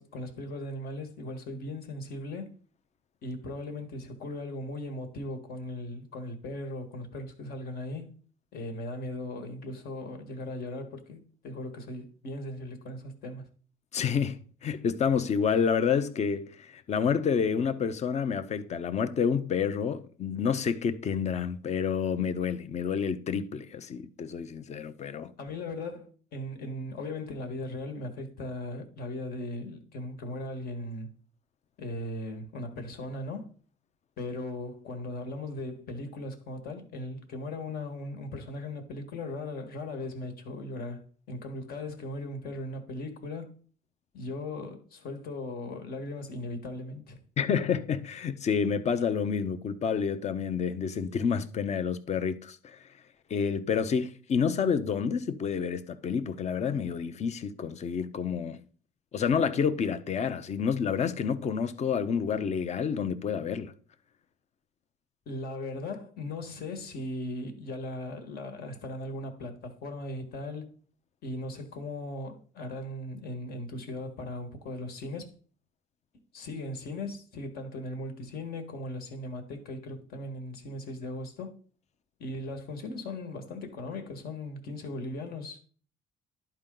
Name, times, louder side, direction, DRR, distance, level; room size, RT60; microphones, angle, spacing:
voice 1, 0.0-2.5 3.2-8.1 8.5-13.5 25.4-31.1 31.8-33.5 34.2-43.5 44.1-47.2 65.2-70.7 71.2-75.3 76.3-81.5 82.2-85.6, left 1 dB, 65° left, 1.6 m, -38 dB
voice 2, 13.9-25.3 47.4-52.8 53.3-58.6 59.1-63.7, left 6 dB, 40° left, 0.7 m, -29 dB
11.0 x 4.5 x 3.8 m
cardioid pair, 110°, 17 cm